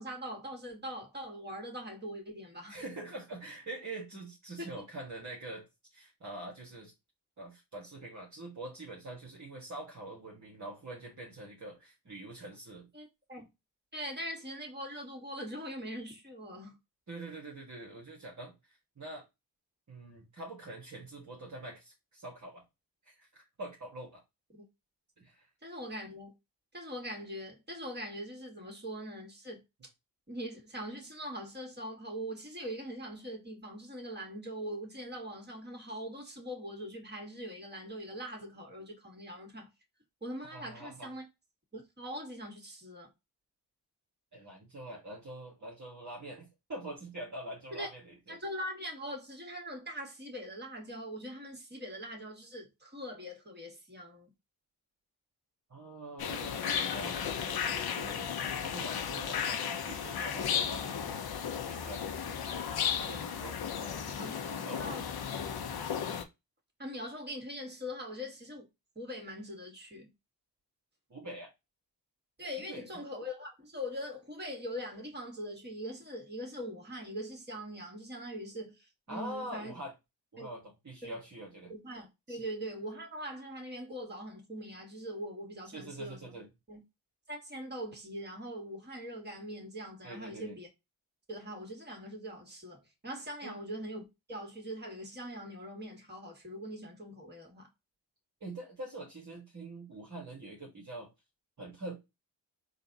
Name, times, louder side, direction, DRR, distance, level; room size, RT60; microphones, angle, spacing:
voice 1, 0.0-2.8 4.6-4.7 12.9-13.5 13.9-16.8 25.6-26.3 26.7-29.6 30.3-39.7 40.2-41.2 41.7-43.1 47.7-47.9 48.3-54.3 64.2-65.1 65.5-66.0 66.8-68.7 69.0-70.1 72.4-79.8 80.4-80.5 81.0-81.1 81.7-86.3 86.7-86.8 87.3-90.7 91.3-97.7, equal, 20° right, 2.1 m, -42 dB
voice 2, 2.7-5.7 5.9-6.9 7.4-12.9 17.1-19.2 19.9-22.6 23.1-24.2 25.2-25.5 40.5-41.1 44.3-48.4 55.7-61.1 61.7-62.4 63.0-64.0 64.4-64.8 71.1-71.5 72.7-73.0 79.1-79.9 80.3-81.7 82.3-82.4 85.7-86.5 90.0-90.6 93.4-93.6 98.4-101.1 101.6-102.0, right 1 dB, 35° right, 1.6 m, -45 dB
sound 1, 56.2-66.2, left 8 dB, 50° left, 0.8 m, -34 dB
3.9 x 2.6 x 4.0 m
hypercardioid pair, 40°, 49 cm